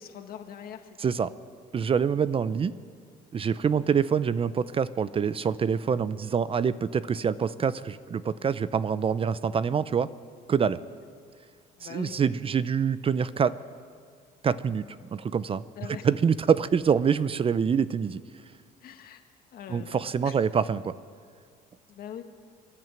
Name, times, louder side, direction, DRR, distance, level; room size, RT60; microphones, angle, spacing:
voice 1, 0.0-1.3 3.4-3.5 11.8-12.2 15.8-16.1 18.8-19.2 19.5-20.4 21.9-22.2, left 9 dB, 65° left, 6 dB, 1.8 m, -43 dB
voice 2, 1.0-1.3 1.7-2.7 3.3-10.1 10.5-10.8 11.8-13.6 14.4-14.8 15.1-15.6 16.0-18.2 19.7-21.0, right 7 dB, 35° right, 16 dB, 0.6 m, -25 dB
27.5 x 11.0 x 9.1 m, 2.1 s
cardioid pair, 110°, 17 cm